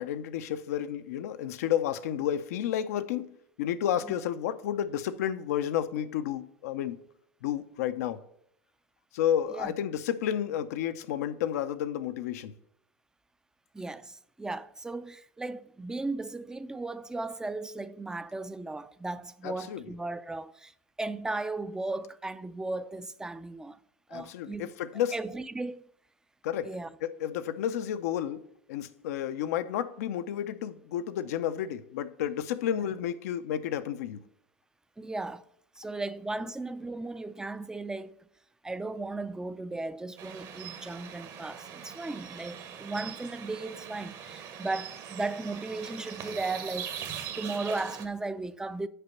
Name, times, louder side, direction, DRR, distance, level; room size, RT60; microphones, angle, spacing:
voice 1, 0.0-7.0 7.4-8.2 9.1-12.5 19.4-19.8 24.1-25.2 26.4-26.7 27.0-28.4 28.7-34.2, left 10 dB, 80° left, 0.6 m, -31 dB
voice 2, 13.7-23.8 24.1-24.7 25.1-25.9 26.6-26.9 35.0-35.4 35.8-38.2 38.6-47.0 47.4-48.9, right 2 dB, 10° right, 0.4 m, -36 dB
sound 1, 40.2-48.1, right 8 dB, 50° right, 1.1 m, -41 dB
6.7 x 5.1 x 5.7 m
hypercardioid pair, 100°, 8 cm